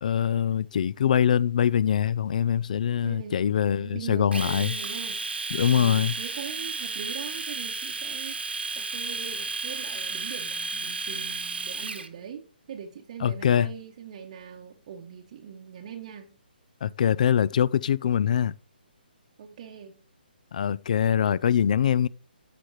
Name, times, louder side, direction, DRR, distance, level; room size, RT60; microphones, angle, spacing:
voice 1, 0.0-4.7 5.5-6.2 13.2-13.7 16.8-18.5 20.5-22.1, left 9 dB, 50° left, 0.3 m, -23 dB
voice 2, 3.0-5.3 5.7-16.4 19.4-20.0, right 7 dB, 40° right, 0.9 m, -41 dB
Domestic sounds home sounds, 4.3-12.1, right 4 dB, 90° right, 1.3 m, -33 dB
15.0 x 5.0 x 3.1 m
hypercardioid pair, 155°, 5 cm